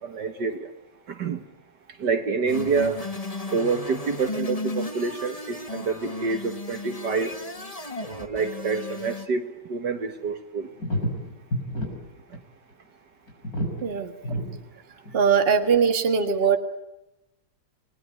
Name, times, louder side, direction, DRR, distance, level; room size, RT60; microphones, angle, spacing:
voice 1, 0.0-0.7 1.1-1.4 2.0-3.0 3.5-7.3 8.0-10.7, right 4 dB, 60° right, 8 dB, 2.0 m, -27 dB
sound 1, 2.5-9.3, left 2 dB, 20° left, 1.6 m, -35 dB
sound 2, 10.2-10.3 10.8-11.9 12.2-12.4 12.7-12.8 13.3-13.8 14.2-14.5 15.0-15.1, equal, 45° left, 7.1 m, -28 dB
voice 2, 13.8-14.1 15.1-16.6, right 6 dB, 30° right, 6 dB, 1.9 m, -21 dB
29.5 x 20.5 x 9.4 m, 0.94 s
omnidirectional pair, 2.2 m